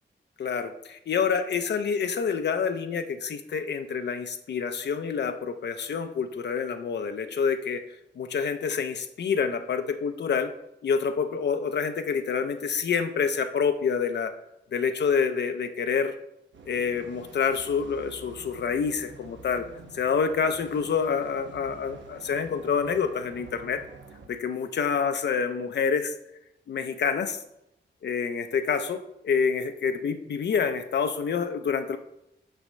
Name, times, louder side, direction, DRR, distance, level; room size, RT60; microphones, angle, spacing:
voice 1, 0.4-7.8 8.2-10.5 10.8-14.3 14.7-16.1 16.7-19.6 19.9-23.8 24.3-26.1 26.7-27.4 28.0-32.0, left 6 dB, 70° left, 8 dB, 0.5 m, -27 dB
sound 1, 16.5-24.3, right 3 dB, 90° right, 0.9 m, -48 dB
6.7 x 4.2 x 6.2 m, 0.84 s
wide cardioid pair, 150°, 19 cm